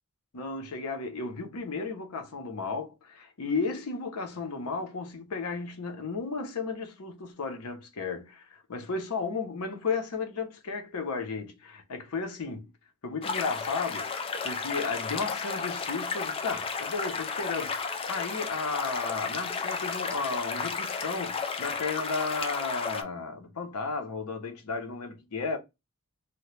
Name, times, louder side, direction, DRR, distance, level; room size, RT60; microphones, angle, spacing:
voice 1, 0.3-12.7 13.0-14.1 14.4-25.6, left 4 dB, 90° left, 0.7 m, -34 dB
sound 1, 13.2-23.0, left 5 dB, 25° left, 0.3 m, -33 dB
2.9 x 2.1 x 3.0 m
head